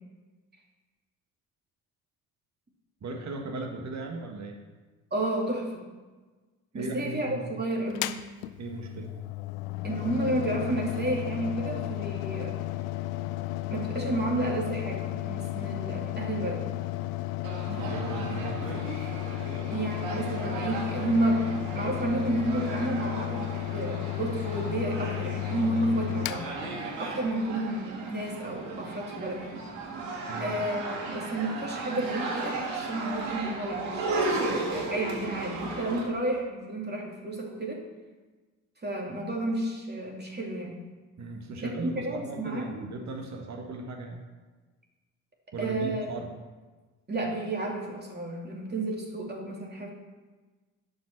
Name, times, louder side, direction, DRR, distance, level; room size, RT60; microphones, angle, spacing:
voice 1, 3.0-4.6 6.7-7.5 8.6-9.1 17.7-18.9 30.3-30.5 41.2-44.2 45.5-46.3, right 3 dB, 40° right, 3 dB, 1.8 m, -37 dB
voice 2, 5.1-5.9 6.7-8.1 9.8-12.5 13.7-16.6 19.7-21.5 21.7-26.4 27.0-29.4 30.4-37.8 38.8-40.8 41.6-42.9 45.6-46.0 47.1-49.9, right 1 dB, 25° right, -1 dB, 2.8 m, -31 dB
Mechanical fan, 7.9-27.3, left 17 dB, 75° left, 0.6 m, -34 dB
sound 1, 17.4-36.0, right 3 dB, 75° right, 1.7 m, -35 dB
11.0 x 5.7 x 6.0 m, 1.3 s
figure-of-eight pair, 50°, 40 cm